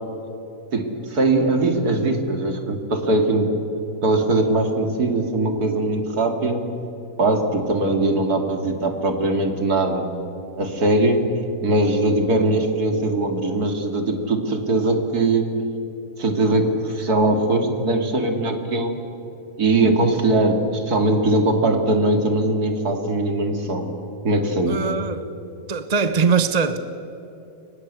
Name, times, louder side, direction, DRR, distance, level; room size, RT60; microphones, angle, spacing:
voice 1, 0.7-3.5 4.0-6.6 7.2-10.1 10.6-11.2 11.6-15.5 16.2-19.0 19.6-23.9 24.2-24.8, right 2 dB, 85° right, 3.1 m, -21 dB
voice 2, 24.7-25.2 25.7-26.8, right 5 dB, 30° right, 1.0 m, -21 dB
30.0 x 24.0 x 8.3 m
omnidirectional pair, 1.6 m